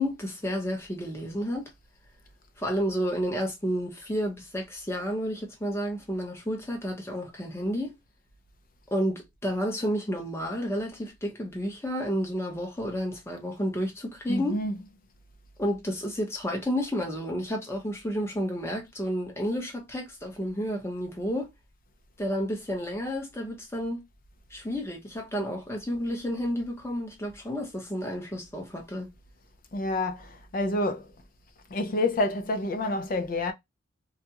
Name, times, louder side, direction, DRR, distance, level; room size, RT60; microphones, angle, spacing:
voice 1, 0.0-1.7 2.6-8.0 8.9-14.6 15.6-21.5 22.2-24.0 24.5-29.1, equal, 15° left, 0.8 m, -31 dB
voice 2, 14.3-14.8 29.7-31.1 31.7-33.5, left 2 dB, 45° left, 0.5 m, -28 dB
2.5 x 2.2 x 2.8 m
head